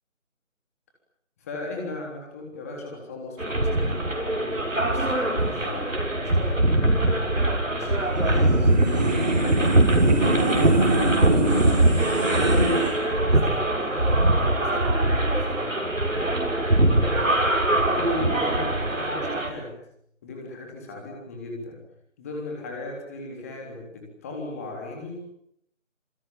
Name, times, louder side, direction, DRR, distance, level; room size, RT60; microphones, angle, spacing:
voice 1, 1.4-7.4 7.7-9.8 10.2-16.0 16.8-17.1 17.8-19.7 20.2-21.8 22.2-25.2, left 2 dB, 10° left, 0 dB, 3.6 m, -37 dB
sound 1, 3.4-19.5, right 1 dB, 75° right, 6.8 m, -22 dB
sound 2, 8.1-12.9, right 1 dB, 35° right, 6.3 m, -25 dB
27.0 x 24.5 x 8.8 m, 0.74 s
figure-of-eight pair, 165°, 40 cm